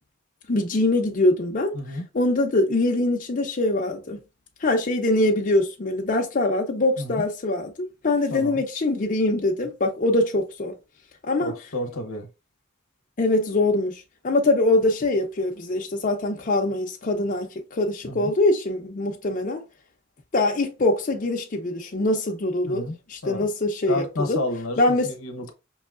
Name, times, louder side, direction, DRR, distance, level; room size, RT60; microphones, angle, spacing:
voice 1, 0.5-1.7 2.1-4.2 4.6-7.7 8.0-10.7 11.2-11.5 13.2-19.6 20.3-22.8 23.1-24.4 24.8-25.1, left 2 dB, 40° left, 0.5 m, -23 dB
voice 2, 1.7-2.1 7.0-7.2 8.3-8.6 11.4-12.3 18.1-18.3 22.6-23.0 23.2-23.5 23.9-25.5, left 1 dB, 75° left, 0.9 m, -31 dB
5.4 x 3.0 x 2.4 m
head